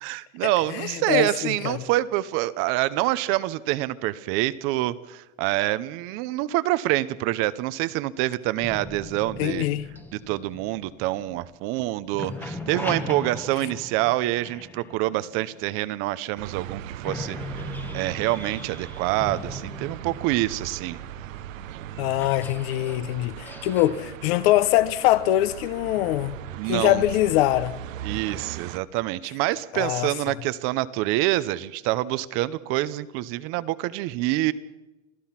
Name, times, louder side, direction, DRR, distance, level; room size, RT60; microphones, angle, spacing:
voice 1, 0.0-9.7 10.1-21.0 26.5-27.0 28.0-34.5, right 16 dB, 35° right, 0.8 m, -26 dB
voice 2, 0.7-1.8 9.4-9.8 22.0-26.3 26.7-27.8 29.7-30.4, left 15 dB, 50° left, 1.1 m, -23 dB
sound 1, 8.6-11.8 12.0-16.0 16.6-16.7 17.0-28.4, left 2 dB, 5° left, 1.1 m, -40 dB
sound 2, 16.4-28.8, right 11 dB, 80° right, 1.1 m, -38 dB
27.5 x 16.0 x 5.9 m
supercardioid pair, 160°, 39 cm